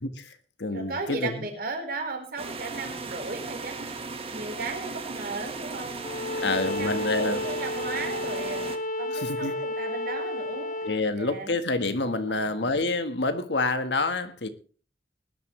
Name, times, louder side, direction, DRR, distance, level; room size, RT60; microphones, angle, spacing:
voice 1, 0.0-1.5 6.4-7.4 9.1-9.6 10.8-14.5, left 3 dB, 75° left, 1.5 m, -28 dB
voice 2, 0.7-3.9 4.3-6.0 6.3-8.6 9.0-10.8 11.1-11.6 12.3-12.7, right 3 dB, 55° right, 4.5 m, -36 dB
sound 1, 2.4-8.8, right 3 dB, 35° right, 1.8 m, -37 dB
Bowed string instrument, 6.0-11.0, left 1 dB, 50° left, 1.6 m, -32 dB
20.0 x 11.5 x 3.3 m
head